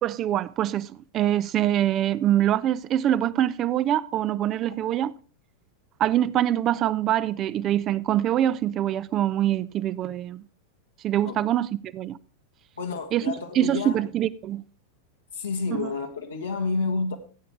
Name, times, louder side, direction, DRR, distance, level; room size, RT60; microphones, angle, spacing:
voice 1, 0.0-5.1 6.0-10.4 11.0-12.2 13.1-13.2 13.5-14.6 15.7-15.9, right 11 dB, 30° right, 0.5 m, -24 dB
voice 2, 12.8-14.0 15.3-17.2, left 4 dB, 75° left, 1.6 m, -29 dB
16.5 x 9.0 x 3.3 m
figure-of-eight pair, 90°, 0 cm